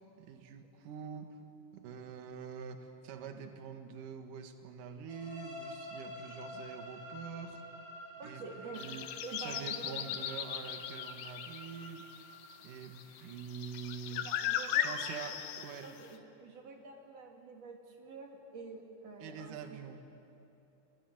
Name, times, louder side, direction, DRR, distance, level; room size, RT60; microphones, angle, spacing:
voice 1, 0.2-1.4 1.7-7.6 8.2-8.4 8.7-9.1 9.4-12.1 12.6-14.3 14.8-15.9 19.2-20.0, right 6 dB, 65° right, 6 dB, 2.2 m, -45 dB
sound 1, 5.1-12.9, left 1 dB, 20° right, 3.5 m, -49 dB
voice 2, 8.2-8.8 9.2-10.0 14.1-15.4 15.8-19.8, right 4 dB, 40° right, 1 dB, 2.6 m, -48 dB
sound 2, 8.7-16.1, left 10 dB, 90° left, 2.2 m, -38 dB
27.5 x 21.0 x 9.5 m, 3.0 s
omnidirectional pair, 5.9 m